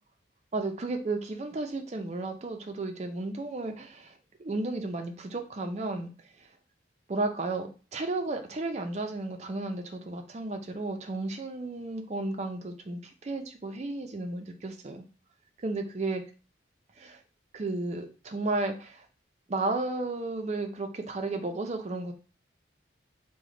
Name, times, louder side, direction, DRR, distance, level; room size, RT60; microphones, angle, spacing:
voice 1, 0.5-6.1 6.4-6.5 7.1-15.0 15.6-16.2 17.0-17.2 17.5-19.1 19.5-22.1, right 2 dB, 35° right, 6 dB, 0.4 m, -33 dB
3.2 x 2.1 x 3.7 m, 0.36 s
head